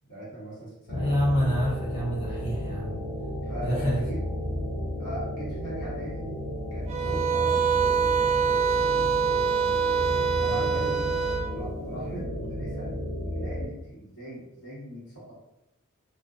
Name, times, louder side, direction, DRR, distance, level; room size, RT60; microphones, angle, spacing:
voice 1, 0.0-1.3 3.4-4.2 5.0-6.3 6.7-9.3 10.3-11.1 11.5-12.9 13.2-15.3, right 1 dB, 80° left, -8 dB, 1.4 m, -40 dB
sound 1, 0.9-13.6, equal, 45° left, 0.9 m, -33 dB
voice 2, 0.9-3.0 3.6-4.0 10.2-10.8, equal, 25° left, -6 dB, 0.5 m, -28 dB
sound 2, 6.9-11.5, right 6 dB, 30° right, 0.3 m, -25 dB
2.5 x 2.1 x 2.4 m, 0.89 s
head